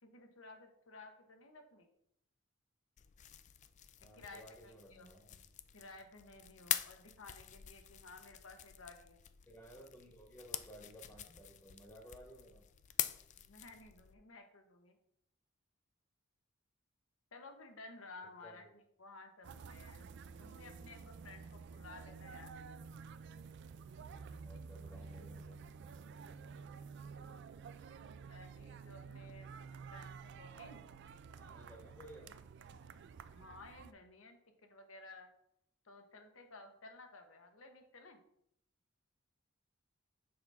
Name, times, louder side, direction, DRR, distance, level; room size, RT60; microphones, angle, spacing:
voice 1, 0.0-1.9 4.1-5.1 5.7-9.2 13.4-15.0 17.3-18.6 19.0-20.1 20.4-22.5 28.2-29.6 29.9-30.8 33.3-35.3 35.8-38.2, left 3 dB, 80° left, 5 dB, 1.1 m, -55 dB
sound 1, 3.0-14.1, left 11 dB, 35° left, 0.3 m, -45 dB
voice 2, 4.0-5.4 9.5-12.6 18.4-18.7 24.4-25.6 31.3-32.3, right 1 dB, 15° left, 0 dB, 1.2 m, -56 dB
sound 2, 19.4-33.9, right 5 dB, 60° right, 0.4 m, -51 dB
6.8 x 5.6 x 3.5 m, 0.74 s
head